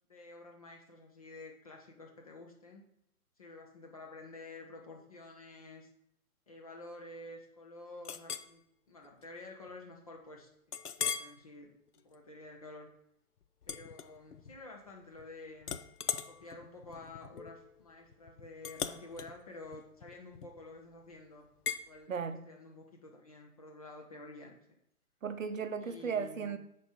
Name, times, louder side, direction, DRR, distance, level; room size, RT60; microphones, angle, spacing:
voice 1, 0.1-2.8 3.4-5.9 6.5-10.5 11.0-11.7 12.0-12.9 13.7-15.8 16.3-21.5 21.9-22.1 22.5-24.6 25.8-26.5, left 2 dB, 25° left, 1 dB, 0.5 m, -50 dB
Chink clink, 8.0-8.5 9.0-9.2 9.7-9.8 10.7-11.4 11.9-12.1 13.6-14.6 14.9-15.3 15.6-20.7 21.7-21.9, left 7 dB, 85° left, 0.6 m, -40 dB
voice 2, 22.1-22.5 25.2-26.6, right 6 dB, 60° right, 10 dB, 0.6 m, -36 dB
5.2 x 4.2 x 4.9 m, 0.75 s
figure-of-eight pair, 130°, 45 cm